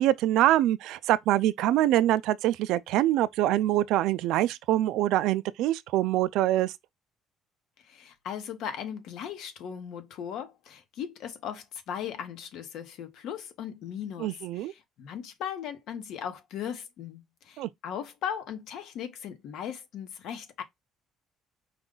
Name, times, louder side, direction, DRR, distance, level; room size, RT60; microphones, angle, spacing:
voice 1, 0.0-6.7 14.2-14.7 17.6-17.7, right 14 dB, 75° right, 0.4 m, -24 dB
voice 2, 7.8-20.6, left 8 dB, 65° left, 1.0 m, -38 dB
5.1 x 2.3 x 3.8 m
cardioid pair, 145°, 0 cm